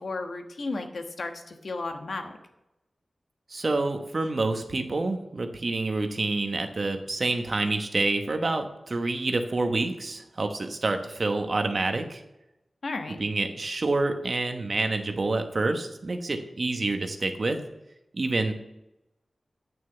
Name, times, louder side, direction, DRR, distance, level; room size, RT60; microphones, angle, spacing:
voice 1, 0.0-2.3 12.8-13.2, left 3 dB, 65° left, 5 dB, 1.2 m, -34 dB
voice 2, 3.5-12.2 13.2-17.6 18.1-18.5, right 2 dB, 50° right, 6 dB, 1.0 m, -27 dB
9.1 x 6.5 x 8.2 m, 0.92 s
wide cardioid pair, 115°, 0 cm